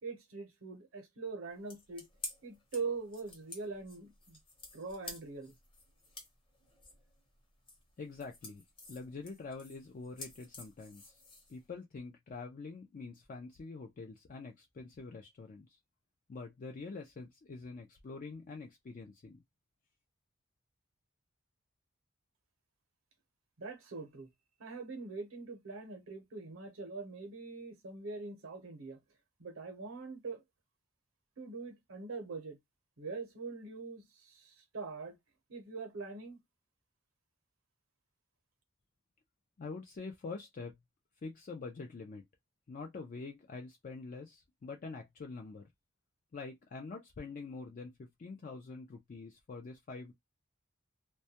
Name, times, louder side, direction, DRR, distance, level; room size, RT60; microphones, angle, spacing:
voice 1, 0.0-2.1 2.4-4.4 4.7-5.5 23.6-24.3 24.6-29.0 29.4-30.4 31.4-32.6 33.0-35.2 35.5-36.4, right 4 dB, 75° right, 0.7 m, -43 dB
sound 1, 1.5-11.7, left 2 dB, 25° left, 0.8 m, -51 dB
voice 2, 8.0-8.6 8.9-11.2 11.5-15.8 16.3-19.4 39.6-40.8 41.2-42.2 42.7-45.6 46.3-50.1, left 4 dB, 40° left, 0.4 m, -45 dB
2.2 x 2.1 x 2.8 m
head